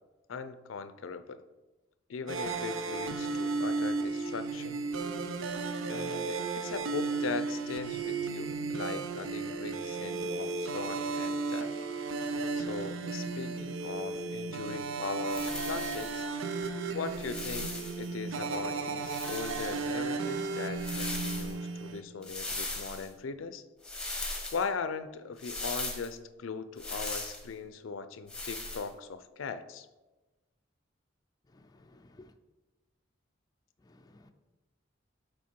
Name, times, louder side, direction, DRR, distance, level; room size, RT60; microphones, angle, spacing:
voice 1, 0.3-1.4 2.1-4.8 5.8-11.8 12.5-16.3 16.9-23.6 24.5-29.9, left 5 dB, 90° left, 0.5 m, -39 dB
sound 1, 2.3-22.0, right 4 dB, 85° right, 0.5 m, -34 dB
sound 2, 15.3-16.2 17.1-18.1 19.0-19.9 20.7-21.5 22.2-23.1 23.8-24.6 25.4-26.1 26.8-27.4 28.3-28.9, left 2 dB, 5° left, 1.0 m, -38 dB
voice 2, 31.5-32.3 33.8-34.3, left 2 dB, 20° left, 0.4 m, -57 dB
7.2 x 4.4 x 4.4 m
head